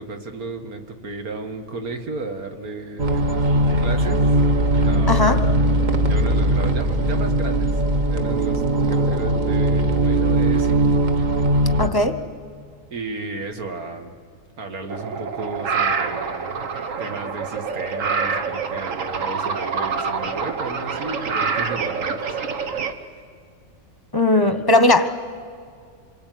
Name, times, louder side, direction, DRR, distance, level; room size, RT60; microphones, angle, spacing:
voice 1, 0.0-3.2 3.8-4.3 4.9-5.5 5.8-8.6 8.9-10.9 11.5-11.6 12.9-14.1 14.6-16.5 17.0-23.1, right 3 dB, 80° right, 5 dB, 2.3 m, -33 dB
sound 1, 3.0-11.9, right 1 dB, 35° right, 1.2 m, -19 dB
voice 2, 5.1-5.4 11.8-12.1 24.1-25.1, left 2 dB, 20° left, 9 dB, 1.0 m, -17 dB
sound 2, 14.9-22.9, right 5 dB, 60° right, 1.6 m, -26 dB
27.0 x 23.0 x 9.3 m, 2.3 s
omnidirectional pair, 1.5 m